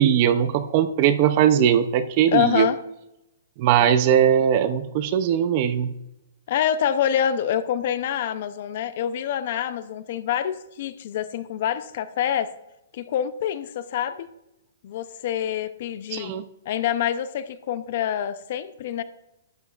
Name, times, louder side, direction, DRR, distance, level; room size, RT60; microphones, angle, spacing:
voice 1, 0.0-2.7 3.6-5.9 16.1-16.4, right 9 dB, 30° right, 11 dB, 0.5 m, -20 dB
voice 2, 2.3-2.8 6.5-12.5 12.9-14.3 14.8-16.3 16.7-19.0, left 10 dB, 40° left, 13 dB, 0.5 m, -26 dB
12.0 x 9.9 x 2.4 m, 0.87 s
hypercardioid pair, 175°, 0 cm